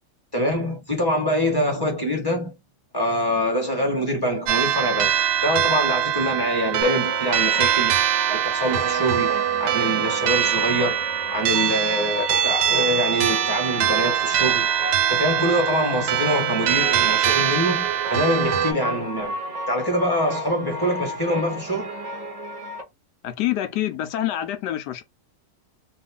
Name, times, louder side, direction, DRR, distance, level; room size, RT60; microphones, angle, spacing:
voice 1, 0.3-2.5 2.9-8.0 8.3-14.7 15.1-19.3 19.7-21.9, equal, 15° left, 1.3 m, -24 dB
sound 1, 4.5-18.7, right 10 dB, 80° right, 1.2 m, -23 dB
sound 2, 6.8-22.8, equal, 40° right, 0.6 m, -33 dB
voice 2, 23.2-25.0, left 13 dB, 80° left, 1.2 m, -26 dB
3.2 x 2.4 x 3.6 m
omnidirectional pair, 1.8 m